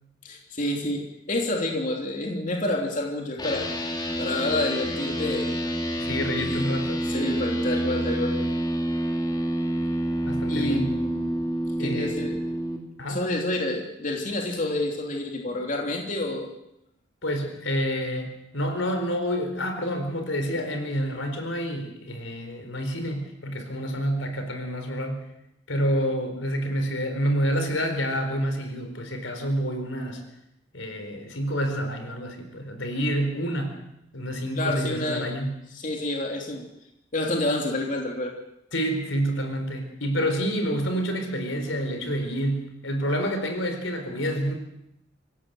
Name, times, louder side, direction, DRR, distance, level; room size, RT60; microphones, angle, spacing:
voice 1, 0.2-3.7 4.2-5.6 6.4-6.7 7.0-8.4 10.5-11.4 11.8-12.3 13.1-16.5 34.6-35.3 35.7-36.7 37.1-38.3, left 1 dB, 40° left, 1 dB, 3.2 m, -28 dB
sound 1, 3.4-12.8, equal, 20° left, 3.1 m, -28 dB
voice 2, 6.0-7.0 10.2-11.0 11.8-12.2 13.0-13.2 17.2-25.2 25.7-30.2 30.7-33.8 34.1-35.6 38.7-44.5, equal, 85° left, 6 dB, 4.3 m, -28 dB
25.0 x 17.0 x 7.7 m, 0.81 s
head